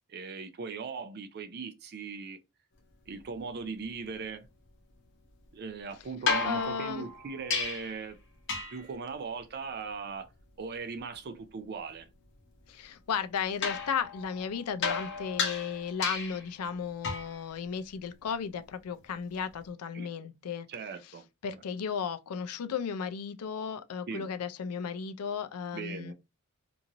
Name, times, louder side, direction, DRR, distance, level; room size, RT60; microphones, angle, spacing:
voice 1, 0.1-2.4 3.1-4.5 5.5-8.2 8.7-10.3 10.6-12.1 19.9-20.1 20.7-21.2 24.1-24.3 25.7-26.1, right 5 dB, 45° right, 0.4 m, -39 dB
sound 1, 6.3-8.0 8.5-8.9 13.6-16.5 17.0-17.4 19.4-19.5, left 4 dB, 55° left, 0.8 m, -33 dB
voice 2, 6.4-7.1 12.7-20.7 21.4-26.1, left 6 dB, 80° left, 0.4 m, -35 dB
2.9 x 2.6 x 2.5 m
head